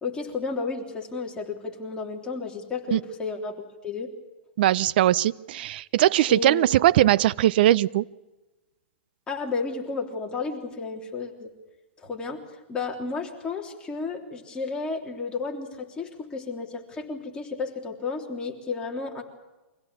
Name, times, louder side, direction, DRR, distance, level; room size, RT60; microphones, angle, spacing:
voice 1, 0.0-4.1 6.3-6.7 9.3-11.5 12.0-19.2, left 4 dB, 15° left, 0 dB, 3.4 m, -32 dB
voice 2, 4.6-8.0, right 13 dB, 55° right, 17 dB, 0.7 m, -20 dB
24.5 x 16.5 x 8.5 m, 1.1 s
hypercardioid pair, 145°, 6 cm